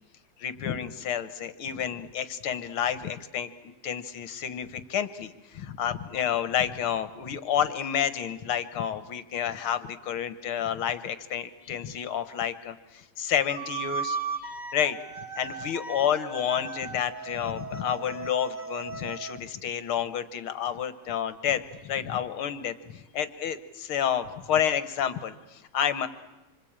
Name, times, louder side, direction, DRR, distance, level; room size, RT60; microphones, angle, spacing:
voice 1, 0.4-3.5 3.8-15.0 15.4-26.1, left 9 dB, 60° left, 12 dB, 1.5 m, -30 dB
sound 1, 13.5-19.4, right 5 dB, 75° right, 0.4 m, -37 dB
26.5 x 25.0 x 8.8 m, 1.0 s
omnidirectional pair, 3.5 m